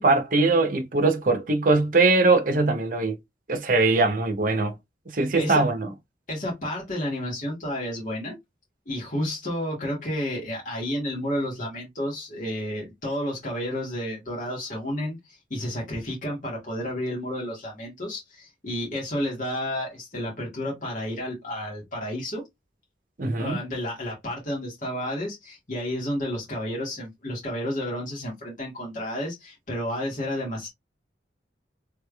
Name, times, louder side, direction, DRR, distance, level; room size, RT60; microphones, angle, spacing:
voice 1, 0.0-3.2 3.5-4.7 5.1-5.9 23.2-23.6, right 3 dB, 50° right, 0.7 m, -21 dB
voice 2, 5.3-5.6 6.3-8.4 8.8-22.4 23.4-30.7, left 1 dB, 50° left, 1.7 m, -31 dB
3.4 x 3.3 x 2.3 m
head